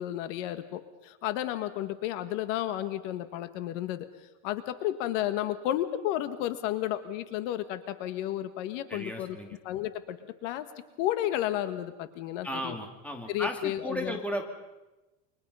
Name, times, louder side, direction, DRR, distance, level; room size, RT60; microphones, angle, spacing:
voice 1, 0.0-4.1 4.4-9.4 9.6-10.7 11.0-12.8 13.3-14.2, left 12 dB, 65° left, 11 dB, 1.6 m, -32 dB
voice 2, 8.9-9.6 12.4-14.4, equal, 5° left, 3 dB, 2.6 m, -35 dB
29.0 x 25.0 x 5.6 m, 1.0 s
supercardioid pair, 160°, 39 cm